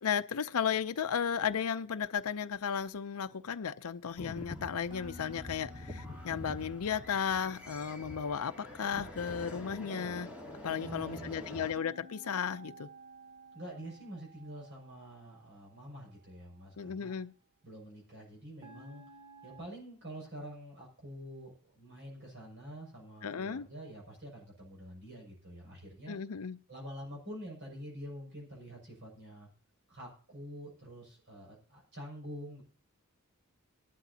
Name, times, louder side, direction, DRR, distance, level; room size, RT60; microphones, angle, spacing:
voice 1, 0.0-10.3 10.6-12.9 16.8-17.3 23.2-23.7 26.1-26.6, left 7 dB, 70° left, 0.5 m, -34 dB
sound 1, 4.2-11.7, left 1 dB, 5° right, 3.1 m, -45 dB
sound 2, 4.9-9.1 11.8-15.9 18.6-19.7, equal, 20° right, 1.1 m, -55 dB
voice 2, 10.8-11.4 13.5-17.1 17.6-19.0 19.4-26.2 26.7-29.5 29.9-32.6, equal, 55° right, 6.3 m, -47 dB
18.5 x 12.0 x 2.8 m
head